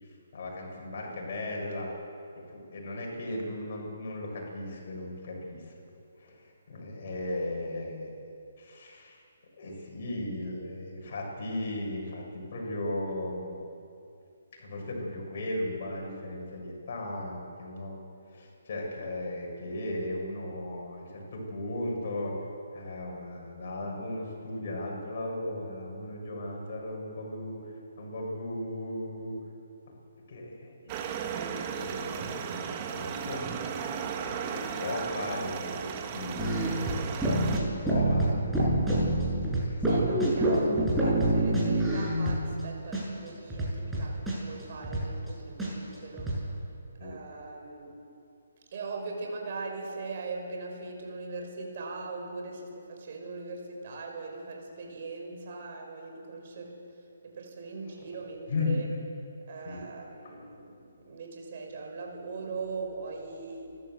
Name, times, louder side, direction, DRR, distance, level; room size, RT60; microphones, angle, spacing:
voice 1, 0.3-1.9 2.5-5.7 6.2-8.1 8.6-9.2 9.6-13.6 14.6-18.0 18.3-22.3 22.7-29.3 30.3-30.9 31.2-33.4 34.3-35.8 36.1-36.5 37.4-38.6 38.9-39.1 39.6-39.9 47.0-47.2 58.5-58.8 59.6-59.8 60.2-60.4, left 1 dB, 50° left, -1 dB, 6.9 m, -36 dB
sound 1, 30.9-37.6, right 7 dB, 30° right, 1.9 m, -35 dB
sound 2, 36.4-42.6 42.9-43.0 43.3-45.3 45.6-45.7 45.9-46.4, right 1 dB, 5° right, 6.4 m, -26 dB
voice 2, 39.8-46.3 47.0-47.9 48.7-58.9 59.5-63.8, right 3 dB, 45° right, 1 dB, 5.2 m, -40 dB
29.0 x 12.5 x 7.8 m, 2.6 s
figure-of-eight pair, 140°, 0 cm